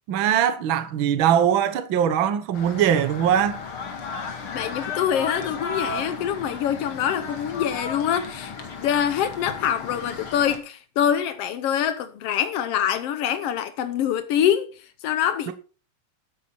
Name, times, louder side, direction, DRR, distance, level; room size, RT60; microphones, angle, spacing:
voice 1, 0.1-3.6 15.5-15.6, right 9 dB, 70° right, 1.1 m, -21 dB
sound 1, 2.5-10.6, left 5 dB, 45° left, 2.3 m, -34 dB
voice 2, 4.5-8.5 8.8-14.8 15.0-15.5, left 9 dB, 90° left, 1.3 m, -25 dB
13.0 x 8.9 x 4.5 m
omnidirectional pair, 3.9 m